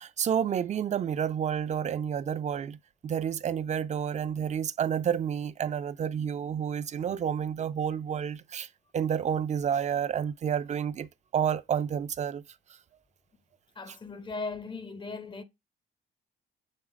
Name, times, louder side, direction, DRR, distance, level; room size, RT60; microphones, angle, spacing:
voice 1, 0.0-8.7 8.9-12.4, right 8 dB, 35° right, 0.4 m, -30 dB
voice 2, 13.8-15.4, left 3 dB, 25° left, 0.5 m, -38 dB
6.5 x 3.3 x 2.3 m
cardioid pair, 90°, 20 cm